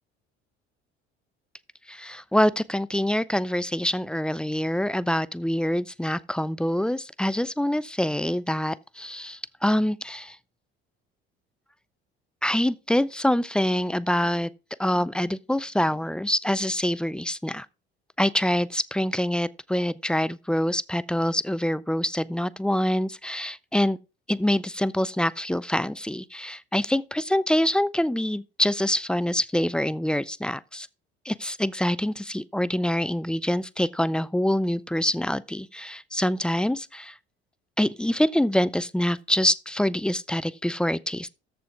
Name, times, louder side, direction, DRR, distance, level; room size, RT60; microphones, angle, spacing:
voice 1, 1.9-10.4 12.4-14.5 14.8-17.7 18.2-24.0 24.3-30.9 31.3-37.1 37.8-41.3, left 1 dB, 5° left, 0.3 m, -25 dB
13.5 x 4.6 x 3.5 m
figure-of-eight pair, 55°, 32 cm